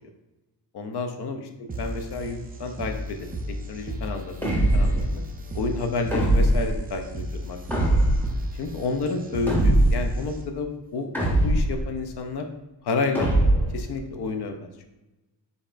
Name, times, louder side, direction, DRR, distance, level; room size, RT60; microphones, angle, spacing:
voice 1, 0.7-3.4 3.7-5.2 5.5-7.6 7.9-8.0 8.5-12.5 12.8-13.3 13.7-14.9, left 3 dB, 65° left, 5 dB, 0.6 m, -30 dB
sound 1, 1.7-10.7, equal, 25° right, 0.3 m, -35 dB
sound 2, 4.4-5.1 6.1-6.7 7.7-8.4 9.5-10.1 11.1-11.8 13.1-13.8, right 1 dB, 5° left, 0.7 m, -21 dB
5.2 x 4.0 x 2.5 m, 1.0 s
wide cardioid pair, 170°, 43 cm